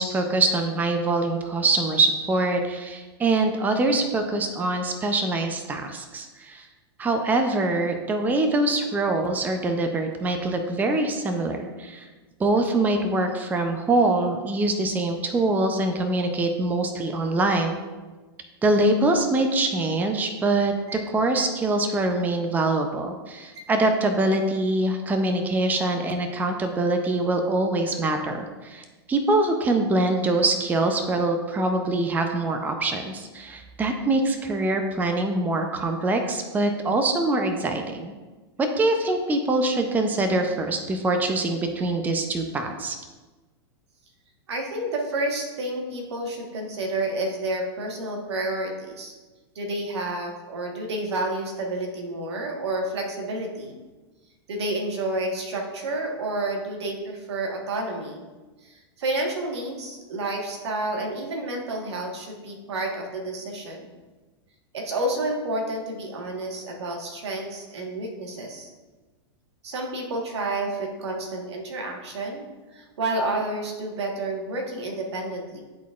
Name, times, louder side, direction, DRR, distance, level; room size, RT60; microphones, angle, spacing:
voice 1, 0.0-6.7 7.0-12.1 12.4-17.8 18.6-38.1 38.6-43.0, right 2 dB, 10° right, 5 dB, 0.5 m, -24 dB
voice 2, 44.5-49.1 49.5-53.7 54.5-58.2 58.6-63.9 64.7-68.7 69.6-72.4 72.7-75.6, right 2 dB, 85° right, 1 dB, 1.4 m, -30 dB
10.5 x 4.1 x 2.4 m, 1.2 s
hypercardioid pair, 130°, 14 cm